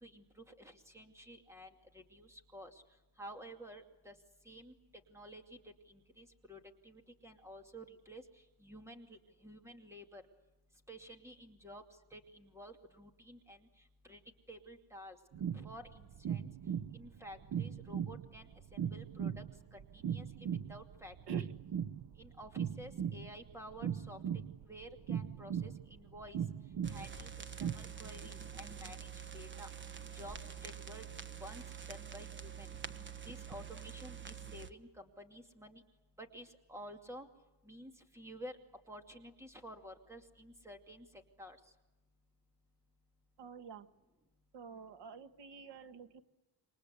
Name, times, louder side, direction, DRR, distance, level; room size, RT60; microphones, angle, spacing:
voice 1, 0.0-2.8 3.2-4.1 4.5-4.7 5.1-5.4 5.9-6.6 6.8-8.2 8.6-10.2 10.9-11.8 12.1-13.6 14.1-14.2 14.5-15.2 15.5-16.4 16.9-18.5 18.7-19.4 19.7-21.5 22.2-24.2 24.7-26.4 26.9-27.3 27.6-29.7 30.1-31.0 31.4-32.7 33.2-35.8 36.2-37.3 37.7-38.6 38.9-41.1 41.4-41.6, equal, 5° right, 5 dB, 2.5 m, -51 dB
sound 1, 15.3-27.7, right 8 dB, 55° right, 0.9 m, -39 dB
sound 2, 26.8-34.7, right 7 dB, 30° right, 1.2 m, -47 dB
voice 2, 43.4-43.9 44.5-46.2, right 6 dB, 90° right, 10 dB, 1.6 m, -49 dB
28.5 x 24.5 x 8.2 m, 1.0 s
wide cardioid pair, 165°, 41 cm